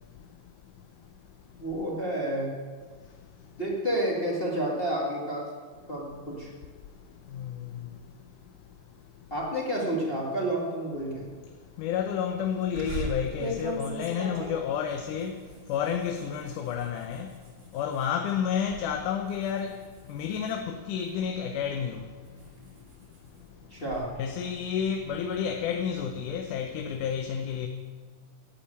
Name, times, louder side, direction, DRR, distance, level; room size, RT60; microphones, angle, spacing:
voice 1, 1.6-2.6 3.6-5.5 5.9-6.5 9.3-11.3 23.7-24.1, right 1 dB, 20° left, 1.8 m, -30 dB
voice 2, 11.8-15.4 15.7-17.3 17.7-19.7 20.1-22.0 24.2-27.7, left 8 dB, 90° left, 2.3 m, -30 dB
sound 1, 12.7-18.1 18.5-18.9 19.3-21.3 21.8-24.0, right 1 dB, 40° right, 3.0 m, -39 dB
11.5 x 8.4 x 8.6 m
omnidirectional pair, 3.5 m